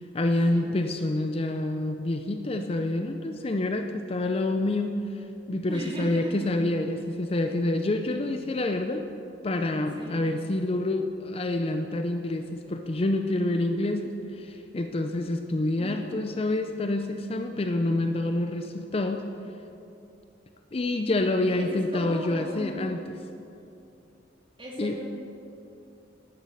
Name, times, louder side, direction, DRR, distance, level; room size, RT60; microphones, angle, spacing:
voice 1, 0.1-9.0 9.4-19.2 20.7-23.2 24.8-25.0, left 2 dB, 30° left, 6 dB, 0.5 m, -27 dB
voice 2, 5.7-6.4 10.0-10.3 15.8-16.3 21.6-22.9 24.6-25.0, equal, 25° right, -2 dB, 2.1 m, -38 dB
11.0 x 9.5 x 6.4 m, 2.7 s
head